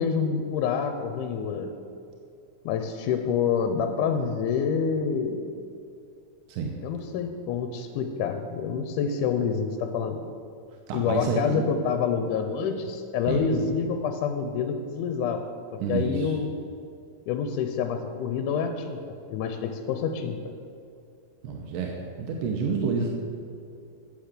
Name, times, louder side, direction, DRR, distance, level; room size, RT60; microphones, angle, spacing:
voice 1, 0.0-1.7 2.7-5.5 6.8-10.2 10.9-16.5 17.3-19.0 19.3-20.4, left 6 dB, 85° left, 6 dB, 2.1 m, -27 dB
voice 2, 10.9-11.6 13.3-13.5 15.8-16.3 21.4-23.1, right 5 dB, 90° right, 1 dB, 2.4 m, -29 dB
9.7 x 6.7 x 6.6 m, 2.6 s
omnidirectional pair, 3.6 m